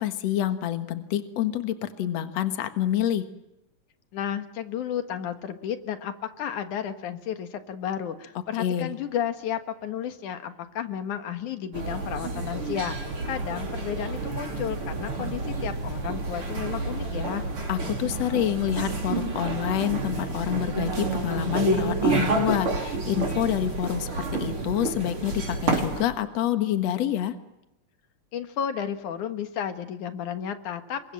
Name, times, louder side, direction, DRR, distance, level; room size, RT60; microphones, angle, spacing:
voice 1, 0.0-3.2 8.6-8.9 17.7-27.3, left 11 dB, 65° left, 9 dB, 2.6 m, -27 dB
voice 2, 4.1-17.4 28.3-31.1, left 9 dB, 85° left, 8 dB, 3.1 m, -32 dB
sound 1, 11.7-26.0, right 3 dB, 45° right, 5.1 m, -29 dB
28.0 x 23.5 x 7.6 m, 0.91 s
omnidirectional pair, 3.4 m